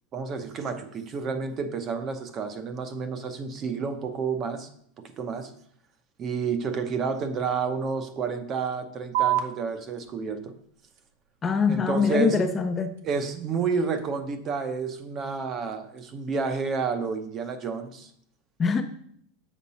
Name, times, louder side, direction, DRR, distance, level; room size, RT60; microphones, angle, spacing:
voice 1, 0.1-4.7 5.2-5.5 6.2-10.5 11.7-12.4 13.0-18.1, right 5 dB, 30° right, 8 dB, 0.7 m, -30 dB
sound 1, 9.1-16.1, right 12 dB, 75° right, 0.9 m, -35 dB
voice 2, 11.4-12.9 18.6-18.8, left 5 dB, 20° left, 7 dB, 0.5 m, -23 dB
7.1 x 5.2 x 4.2 m, 0.66 s
supercardioid pair, 150°, 0 cm